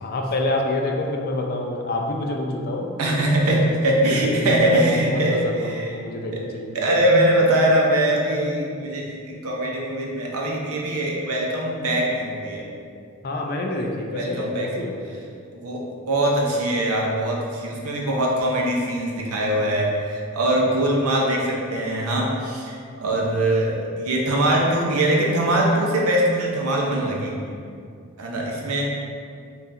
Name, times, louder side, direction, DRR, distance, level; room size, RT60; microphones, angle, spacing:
voice 1, 0.0-3.6 4.1-6.8 13.2-15.1, left 2 dB, 45° left, 1 dB, 0.4 m, -27 dB
voice 2, 3.0-5.9 6.3-6.4 6.7-12.6 14.1-14.7 15.5-27.4 28.2-28.8, right 1 dB, 85° right, -2 dB, 0.7 m, -22 dB
5.2 x 2.4 x 2.6 m, 2.4 s
head